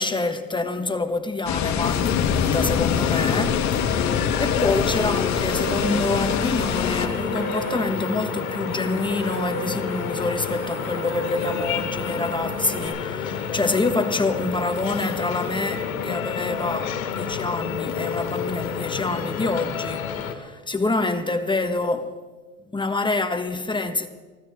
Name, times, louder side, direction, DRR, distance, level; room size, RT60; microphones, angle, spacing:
voice 1, 0.0-22.1 22.7-24.1, left 2 dB, 10° left, 1.4 m, -27 dB
sound 1, 1.5-7.1, left 7 dB, 40° left, 1.7 m, -24 dB
sound 2, 1.8-20.3, left 7 dB, 90° left, 1.7 m, -29 dB
sound 3, 5.4-12.9, right 3 dB, 80° right, 5.0 m, -35 dB
24.0 x 16.0 x 3.7 m
hypercardioid pair, 90°, 41 cm